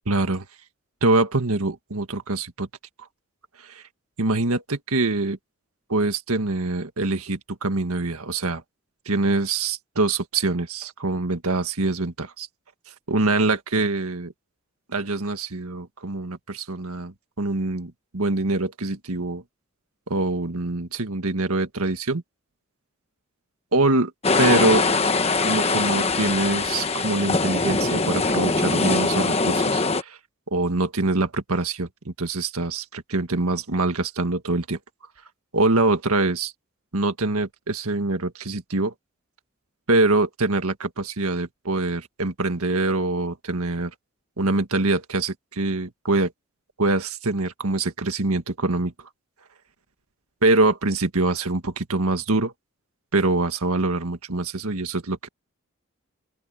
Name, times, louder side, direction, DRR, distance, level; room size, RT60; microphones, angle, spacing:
voice 1, 0.1-0.4 1.0-2.7 3.6-3.8 4.2-5.4 5.9-8.6 9.1-12.5 13.1-14.3 14.9-19.4 20.1-22.2 23.7-24.1 24.4-24.8 25.4-30.2 30.5-34.8 35.5-36.5 36.9-38.9 39.9-43.9 44.4-46.3 46.8-48.9 50.4-52.5 53.1-55.3, right 2 dB, 90° right, 1.8 m, -24 dB
sound 1, 24.2-30.0, left 3 dB, 30° left, 1.2 m, -22 dB
open air
head